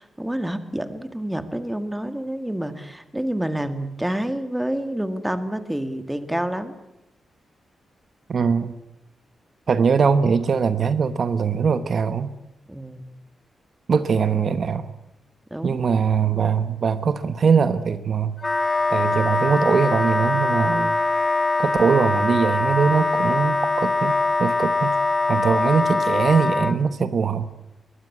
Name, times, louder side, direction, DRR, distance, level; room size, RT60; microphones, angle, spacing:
voice 1, 0.0-6.7 12.7-13.1 15.5-15.8, right 1 dB, 5° right, 10 dB, 1.8 m, -28 dB
voice 2, 8.3-8.7 9.7-12.3 13.9-14.9 15.6-18.3 18.9-21.0 21.6-24.1 24.4-24.9 25.3-27.5, right 6 dB, 50° right, 12 dB, 1.1 m, -21 dB
Wind instrument woodwind instrument, 18.4-26.7, left 2 dB, 20° left, 1.5 m, -22 dB
22.5 x 20.5 x 9.8 m, 0.90 s
wide cardioid pair, 155°, 0 cm